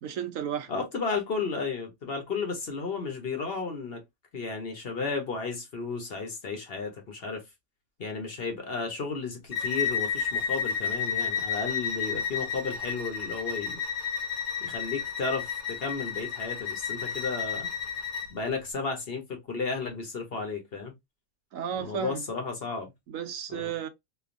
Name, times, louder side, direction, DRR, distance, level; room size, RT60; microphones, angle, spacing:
voice 1, 0.0-0.7 21.5-22.2 23.1-23.9, right 9 dB, 75° right, 1.0 m, -33 dB
voice 2, 0.7-4.0 4.3-7.4 8.0-13.8 14.6-17.7 18.3-20.9 21.7-22.9 23.5-23.7, left 4 dB, 50° left, 1.0 m, -33 dB
Bowed string instrument, 9.5-18.3, left 7 dB, 80° left, 1.5 m, -31 dB
3.1 x 2.4 x 2.4 m
omnidirectional pair, 1.5 m